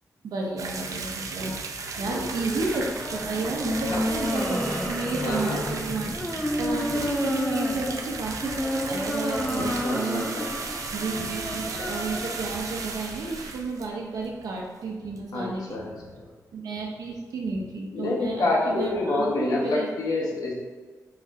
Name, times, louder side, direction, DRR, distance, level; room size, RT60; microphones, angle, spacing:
voice 1, 0.2-1.5 2.0-6.3 6.6-10.4 10.9-15.9 16.5-19.9, right 3 dB, 85° right, 0 dB, 0.8 m, -32 dB
sound 1, 0.6-14.9 15.2-15.3 15.5-15.6 16.0-16.1, right 4 dB, 60° right, 0.4 m, -35 dB
sound 2, 2.3-13.5, left 1 dB, 10° left, 0.4 m, -31 dB
voice 2, 5.2-5.7 9.5-10.5 15.3-16.2 17.9-20.5, left 2 dB, 80° left, -3 dB, 1.0 m, -28 dB
4.1 x 2.5 x 4.1 m, 1.4 s
cardioid pair, 90°, 6 cm